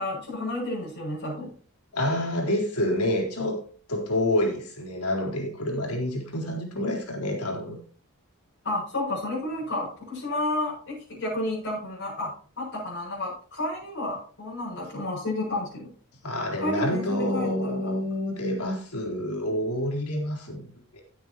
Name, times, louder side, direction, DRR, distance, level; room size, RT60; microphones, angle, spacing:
voice 1, 0.0-1.5 8.6-15.9 16.6-17.7, left 1 dB, 60° left, -8 dB, 7.5 m, -31 dB
voice 2, 1.9-3.6 3.9-7.8 16.2-21.0, left 1 dB, 90° left, 1 dB, 4.0 m, -28 dB
17.0 x 8.8 x 3.0 m, 0.42 s
head